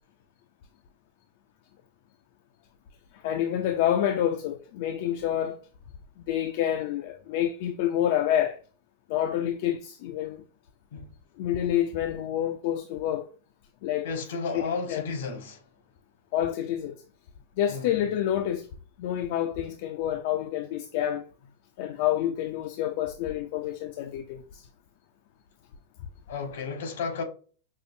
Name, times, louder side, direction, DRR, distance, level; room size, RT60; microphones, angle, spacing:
voice 1, 3.2-5.6 6.3-8.6 9.1-10.4 11.4-13.2 13.8-14.1 14.5-15.1 16.3-16.9 17.6-18.7 19.0-21.2 21.8-24.6, left 11 dB, 55° left, 0.4 m, -28 dB
voice 2, 14.0-15.6 17.7-17.9 26.3-27.2, left 4 dB, 75° left, 1.1 m, -33 dB
5.4 x 2.0 x 2.5 m
supercardioid pair, 145°, 0 cm